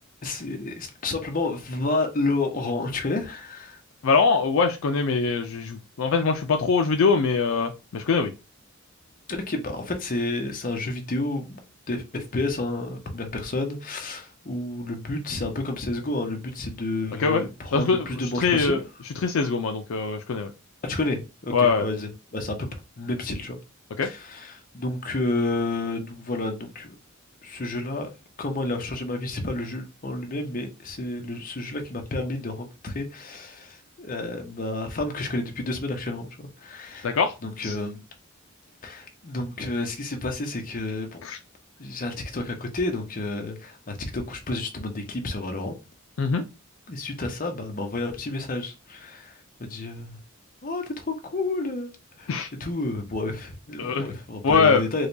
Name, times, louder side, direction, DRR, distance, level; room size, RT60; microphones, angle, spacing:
voice 1, 0.2-3.8 9.5-11.6 11.9-18.8 20.8-22.7 23.0-23.6 24.0-26.9 27.4-28.1 28.4-37.1 37.4-38.0 38.8-41.2 41.8-45.7 46.9-49.3 49.6-50.2 50.6-51.9 52.2-52.3 52.6-55.1, left 2 dB, 40° left, 0.8 m, -30 dB
voice 2, 4.0-8.3 17.2-17.4 17.7-18.1 18.3-18.8 19.2-20.5 21.5-21.8 24.0-24.1 37.0-37.3 37.6-37.8 41.2-41.4 46.2-46.4 52.3-52.5 53.8-54.1 54.4-54.8, left 4 dB, 65° left, 0.4 m, -22 dB
4.7 x 2.2 x 2.6 m
head